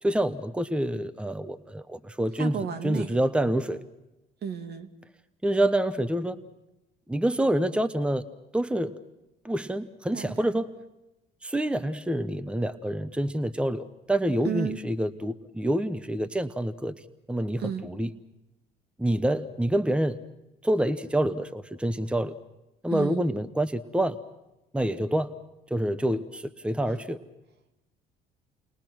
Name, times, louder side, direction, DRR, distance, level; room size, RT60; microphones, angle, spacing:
voice 1, 0.0-3.8 5.4-6.4 7.1-8.2 8.5-9.0 9.4-10.7 11.4-18.1 19.0-20.2 20.6-22.3 22.8-24.2 24.7-25.3 25.7-27.2, right 1 dB, 5° right, 12 dB, 1.1 m, -27 dB
voice 2, 2.4-3.1 4.4-4.9 10.1-10.5 14.4-14.8 17.6-17.9 22.9-23.2, right 8 dB, 55° right, 8 dB, 2.3 m, -32 dB
29.5 x 21.5 x 6.2 m, 0.96 s
hypercardioid pair, 65°, 20 cm